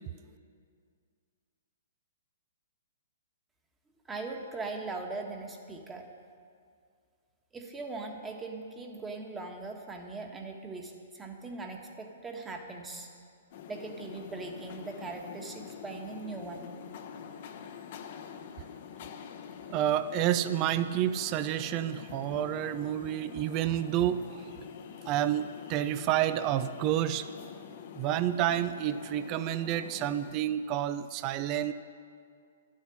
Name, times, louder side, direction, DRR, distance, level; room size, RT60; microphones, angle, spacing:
voice 1, 4.1-6.1 7.5-13.1 13.7-16.7, right 3 dB, 10° right, 2 dB, 1.5 m, -40 dB
sound 1, 13.5-30.3, left 7 dB, 50° left, 0.9 m, -46 dB
voice 2, 19.7-24.5 25.1-27.3 27.9-31.7, right 11 dB, 35° right, 12 dB, 0.5 m, -29 dB
11.5 x 7.4 x 10.0 m, 2.2 s
hypercardioid pair, 140°, 0 cm